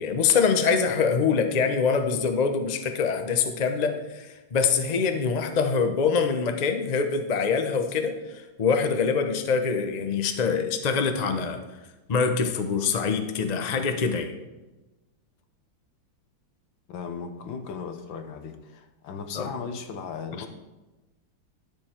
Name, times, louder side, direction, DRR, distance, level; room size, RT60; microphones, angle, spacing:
voice 1, 0.0-11.6 12.1-14.3 19.3-19.5 20.4-20.5, left 5 dB, 45° left, 6 dB, 0.5 m, -24 dB
voice 2, 16.9-20.5, left 5 dB, 80° left, 7 dB, 1.7 m, -36 dB
12.0 x 7.0 x 4.4 m, 1.1 s
omnidirectional pair, 2.1 m